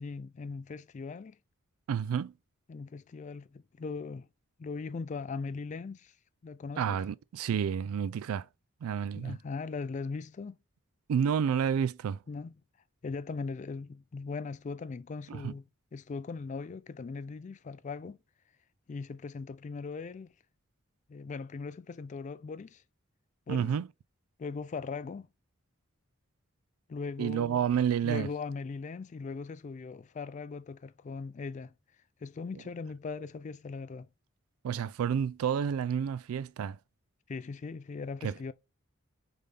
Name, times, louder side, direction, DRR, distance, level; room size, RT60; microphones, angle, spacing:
voice 1, 0.0-1.4 2.7-4.3 4.6-6.1 6.4-7.0 9.1-10.6 12.3-12.6 13.0-18.2 18.9-20.3 21.1-22.8 23.5-23.7 24.4-25.3 26.9-27.6 28.0-31.7 32.2-34.1 37.3-38.5, left 4 dB, 35° left, 0.3 m, -39 dB
voice 2, 1.9-2.3 6.8-8.5 8.8-9.4 11.1-12.2 15.3-15.5 23.5-23.9 27.2-28.3 34.6-36.8 38.2-38.3, right 8 dB, 85° right, 0.3 m, -30 dB
4.1 x 3.3 x 3.4 m
head